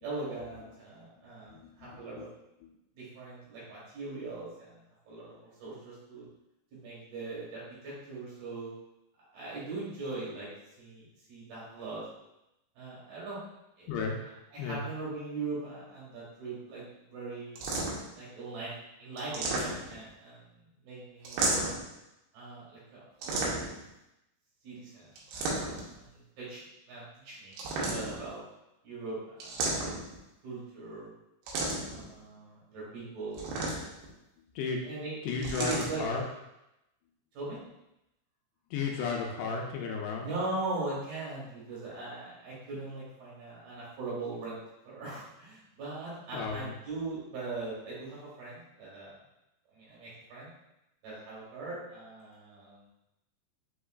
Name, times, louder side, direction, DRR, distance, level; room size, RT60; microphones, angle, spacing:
voice 1, 0.0-2.3 2.9-4.8 5.0-6.3 6.7-8.7 9.3-10.5 10.8-12.0 12.8-13.4 13.8-13.9 14.5-16.8 17.1-17.6 18.2-18.7 19.0-21.7 22.3-23.7 24.6-26.6 26.9-28.4 28.8-29.9 30.4-31.1 31.8-33.5 34.8-36.0 37.3-37.6 40.2-49.2 49.7-50.5 51.0-52.8, right 3 dB, 65° right, -8 dB, 3.2 m, -40 dB
voice 2, 1.5-2.3 2.6-2.7 13.9-14.2 14.6-14.9 34.6-34.8 35.2-36.2 38.7-40.3 46.3-46.8, left 5 dB, 85° left, 0 dB, 2.6 m, -34 dB
sound 1, 17.6-18.1 19.2-20.1 21.2-21.9 23.2-23.9 25.2-25.9 27.5-28.3 29.4-30.2 31.5-32.0 33.3-34.1 35.4-35.9, right 2 dB, 85° right, 2.9 m, -32 dB
6.7 x 2.9 x 2.4 m, 0.90 s
omnidirectional pair, 4.9 m